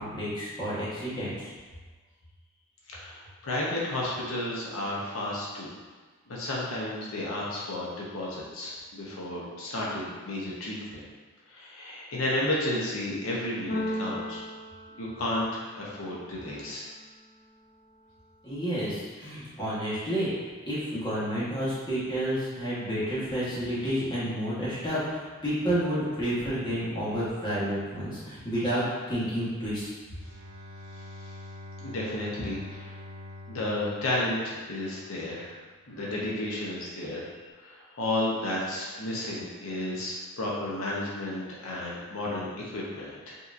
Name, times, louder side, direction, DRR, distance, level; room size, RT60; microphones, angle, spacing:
voice 1, 0.0-1.5 18.4-20.3 20.6-29.9, equal, 20° left, -10 dB, 1.2 m, -30 dB
voice 2, 2.9-5.7 6.3-11.0 11.5-14.4 15.0-16.9 31.8-32.9 33.5-35.5 35.9-37.2 37.6-43.4, left 1 dB, 70° left, -4 dB, 0.8 m, -32 dB
Keyboard (musical), 13.7-15.8, left 1 dB, 40° left, 0.8 m, -35 dB
Bowed string instrument, 30.1-35.1, left 2 dB, 55° right, 0.5 m, -45 dB
5.4 x 2.9 x 2.5 m, 1.4 s
head